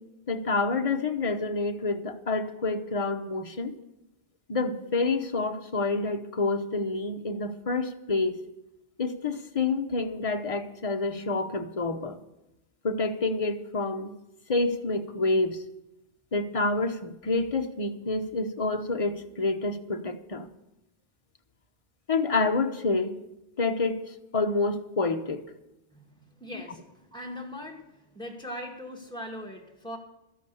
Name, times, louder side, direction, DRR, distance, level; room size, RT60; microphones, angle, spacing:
voice 1, 0.3-3.7 4.5-8.4 9.0-12.2 12.8-14.1 14.5-15.6 16.3-20.5 22.1-23.2 23.6-25.4 26.5-26.6, left 3 dB, 30° left, 6 dB, 0.9 m, -28 dB
voice 2, 25.9-27.9 28.1-30.0, left 1 dB, 5° left, -1 dB, 2.0 m, -40 dB
13.5 x 10.5 x 6.9 m, 0.93 s
omnidirectional pair, 1.2 m